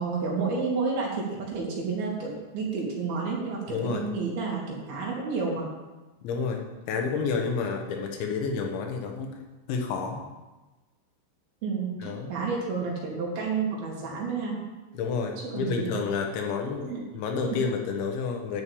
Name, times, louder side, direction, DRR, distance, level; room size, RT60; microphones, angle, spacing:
voice 1, 0.0-5.7 11.6-14.6 15.5-16.0 16.9-17.1 17.4-17.6, right 4 dB, 60° right, -3 dB, 4.0 m, -30 dB
voice 2, 3.7-4.0 6.2-6.6 6.9-9.4 9.7-10.2 12.0-12.3 15.0-18.6, left 5 dB, 85° left, 2 dB, 3.7 m, -30 dB
10.5 x 6.2 x 8.5 m, 1.2 s
omnidirectional pair, 5.2 m